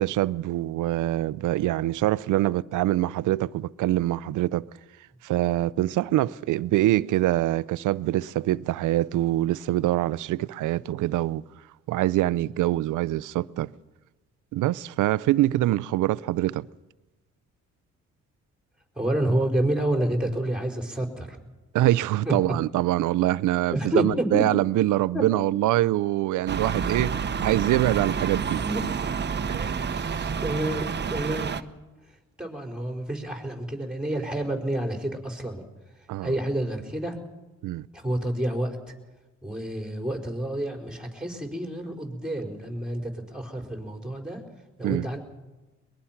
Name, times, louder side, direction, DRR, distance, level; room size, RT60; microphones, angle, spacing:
voice 1, 0.0-4.7 5.2-11.4 11.9-13.7 14.5-16.7 21.7-28.6 29.5-30.3 36.1-36.3 37.6-37.9 44.8-45.1, right 15 dB, 80° right, 0.6 m, -24 dB
voice 2, 18.9-21.4 22.2-22.3 23.7-24.6 25.1-25.2 28.6-28.8 30.4-31.6 32.4-35.6 36.0-37.2 37.9-38.9 39.4-44.4 44.8-45.2, right 1 dB, 5° right, 4.4 m, -29 dB
High School Exterior Ambience (Morning), 26.5-31.6, right 6 dB, 35° right, 1.1 m, -29 dB
22.5 x 21.0 x 5.9 m
cardioid pair, 90°, 30 cm